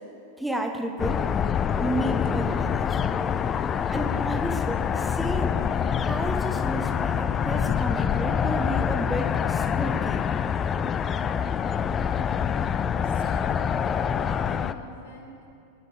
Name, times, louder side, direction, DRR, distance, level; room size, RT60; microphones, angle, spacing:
voice 1, 0.4-1.3 1.8-3.2 3.9-5.6 6.0-10.2, right 1 dB, 5° right, 4 dB, 0.9 m, -32 dB
sound 1, 1.0-14.7, left 7 dB, 25° left, 0.4 m, -26 dB
voice 2, 13.0-15.5, left 1 dB, 65° left, -2 dB, 2.0 m, -44 dB
21.0 x 10.0 x 3.4 m, 2.6 s
figure-of-eight pair, 90°, 0 cm